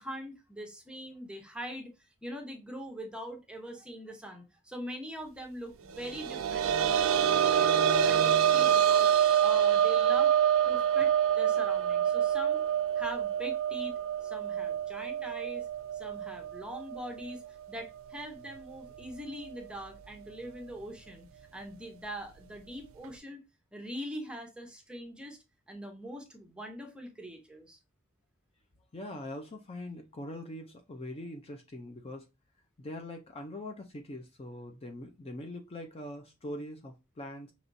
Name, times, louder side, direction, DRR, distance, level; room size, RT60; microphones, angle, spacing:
voice 1, 0.0-1.9 2.2-7.8 8.0-10.3 10.6-12.6 13.0-15.7 15.9-21.3 21.5-23.4 23.7-25.4 25.7-27.8, equal, 5° right, 0.8 m, -42 dB
sound 1, 6.0-17.5 17.8-17.9 19.5-19.6, right 9 dB, 80° right, 0.4 m, -26 dB
voice 2, 28.9-32.3 32.8-37.5, left 1 dB, 30° left, 0.5 m, -42 dB
5.9 x 3.0 x 2.6 m
head